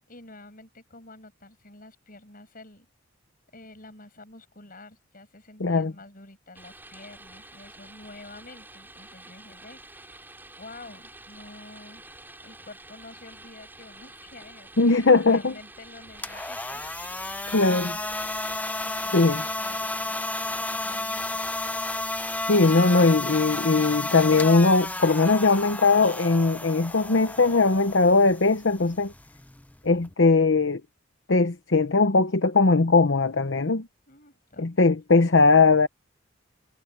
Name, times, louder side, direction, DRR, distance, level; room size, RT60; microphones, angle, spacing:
voice 1, 0.1-2.9 3.5-10.2 10.6-12.0 12.4-16.8 18.8-21.5 34.1-34.9, left 2 dB, 45° left, 7.7 m, -48 dB
voice 2, 5.6-5.9 14.8-15.5 17.5-18.0 19.1-19.4 22.4-29.1 29.8-30.8 31.3-33.9 34.6-35.9, left 3 dB, 65° left, 0.9 m, -20 dB
sound 1, 6.5-22.4, right 2 dB, 10° right, 7.1 m, -48 dB
sound 2, 16.1-30.1, left 2 dB, 10° left, 0.6 m, -32 dB
head